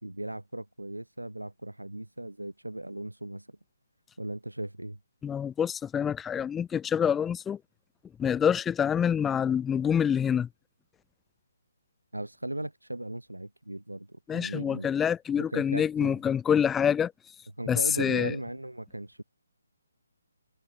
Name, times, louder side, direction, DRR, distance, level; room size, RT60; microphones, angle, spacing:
voice 1, 0.0-3.6 4.2-5.0 12.1-14.9 15.4-16.2 17.6-19.2, right 1 dB, 85° right, 4.0 m, -37 dB
voice 2, 5.2-7.6 8.2-10.5 14.3-17.1 17.7-18.3, left 8 dB, 10° left, 2.1 m, -26 dB
figure-of-eight pair, 145°, 0 cm